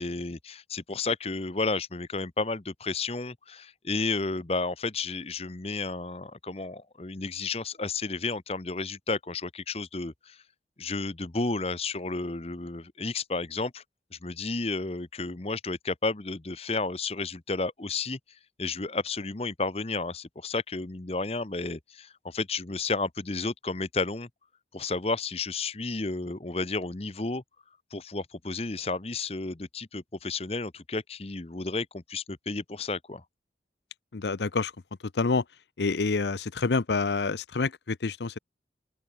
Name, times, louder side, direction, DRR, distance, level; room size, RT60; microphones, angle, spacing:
voice 1, 0.0-10.4 10.8-13.8 14.1-18.2 18.6-24.3 24.7-27.4 27.9-33.2, left 3 dB, 35° left, 0.9 m, -32 dB
voice 2, 34.1-34.7 35.1-35.4 35.8-38.4, left 4 dB, 80° left, 0.7 m, -27 dB
open air
head